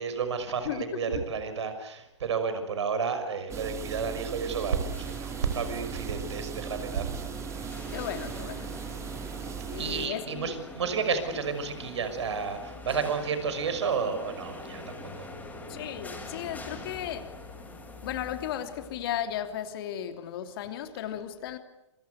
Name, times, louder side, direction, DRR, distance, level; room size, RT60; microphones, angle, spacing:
voice 1, 0.0-7.1 9.8-15.3, right 5 dB, 65° right, 5.9 m, -31 dB
voice 2, 0.6-1.0 7.9-8.7 9.7-10.6 15.7-17.4 18.0-21.6, left 10 dB, 50° left, 2.9 m, -35 dB
sound 1, 3.5-19.5, left 2 dB, 10° left, 7.7 m, -45 dB
sound 2, 3.5-10.1, right 7 dB, 20° right, 2.3 m, -38 dB
28.0 x 25.0 x 8.2 m
hypercardioid pair, 120°, 16 cm